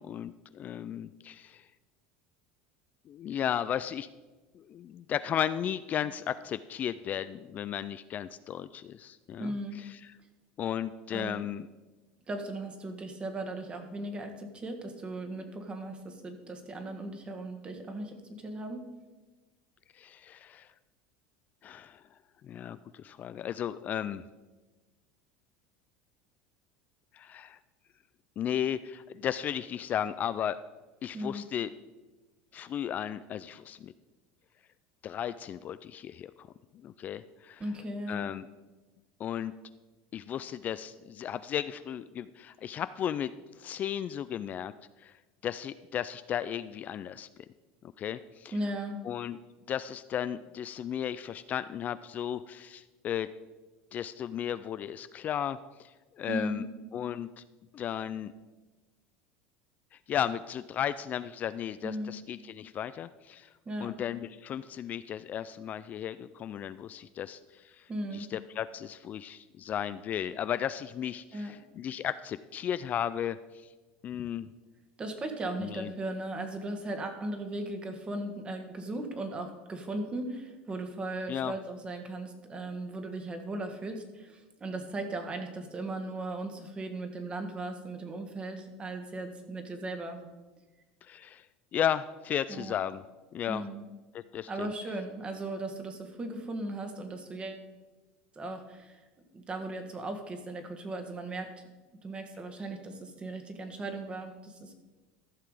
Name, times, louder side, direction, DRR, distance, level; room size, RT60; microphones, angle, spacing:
voice 1, 0.0-1.7 3.1-4.1 4.5-10.0 10.6-11.7 19.9-20.7 21.6-22.0 22.4-24.2 27.1-27.6 28.4-30.6 31.0-31.7 32.5-33.9 35.0-36.5 36.7-37.6 38.1-38.5 39.2-39.5 40.1-43.3 43.6-44.7 45.0-45.2 45.4-47.3 48.0-48.5 49.0-49.4 49.7-53.3 53.9-56.6 56.9-57.4 57.7-58.3 59.9-63.5 63.8-73.7 74.0-74.5 75.6-75.9 81.3-81.5 91.0-91.5 91.7-93.0 93.3-93.6 94.1-94.7, left 9 dB, 40° left, 14 dB, 0.3 m, -35 dB
voice 2, 9.3-9.8 11.1-11.5 12.3-18.8 31.1-31.4 37.6-38.3 48.5-49.0 56.3-56.7 61.8-62.1 63.6-64.0 67.9-68.3 71.3-71.5 75.0-90.3 92.5-92.7 93.5-93.8 94.5-97.6 98.3-99.0 99.3-101.6 102.0-104.7, right 2 dB, 25° right, 6 dB, 1.6 m, -37 dB
14.0 x 5.9 x 4.9 m, 1.2 s
supercardioid pair, 110°, 4 cm